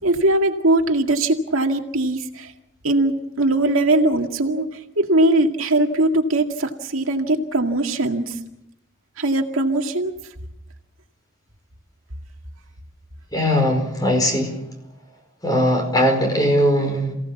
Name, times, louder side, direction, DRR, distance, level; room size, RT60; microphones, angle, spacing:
voice 1, 0.0-2.5 2.8-8.4 9.2-10.1, right 2 dB, 85° right, 3 dB, 2.2 m, -20 dB
voice 2, 13.3-14.6 15.4-17.1, equal, 20° left, 4 dB, 5.0 m, -19 dB
28.0 x 17.5 x 7.2 m, 0.88 s
head